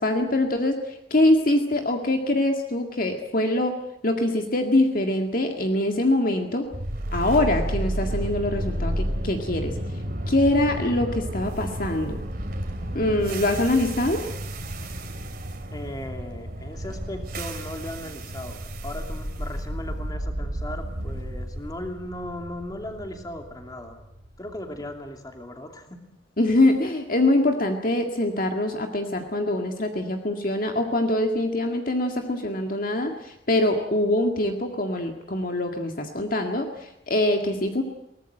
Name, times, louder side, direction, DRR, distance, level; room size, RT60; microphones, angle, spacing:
voice 1, 0.0-3.8 4.0-6.7 7.1-9.8 10.3-12.2 12.9-14.2 26.4-37.8, left 1 dB, 45° left, 4 dB, 1.9 m, -24 dB
sound 1, 6.7-24.8, right 1 dB, 50° right, 3.0 m, -32 dB
voice 2, 12.9-13.3 15.7-24.0 24.4-26.0, left 1 dB, 20° left, 4 dB, 2.8 m, -37 dB
22.5 x 19.0 x 8.9 m, 0.83 s
head